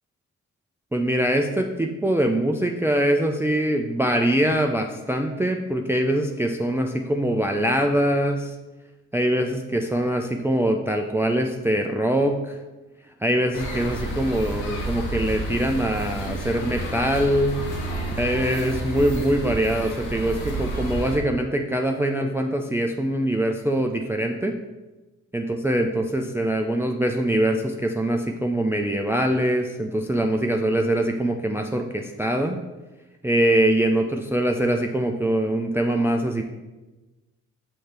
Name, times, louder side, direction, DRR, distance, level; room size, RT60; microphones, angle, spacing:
voice 1, 0.9-8.5 9.1-12.6 13.2-17.6 18.2-24.5 25.3-32.6 33.2-36.4, right 1 dB, 5° right, 3 dB, 0.5 m, -23 dB
sound 1, 13.5-21.2, right 1 dB, 80° left, 1.1 m, -30 dB
6.4 x 3.3 x 4.4 m, 1.1 s
hypercardioid pair, 40°, 37 cm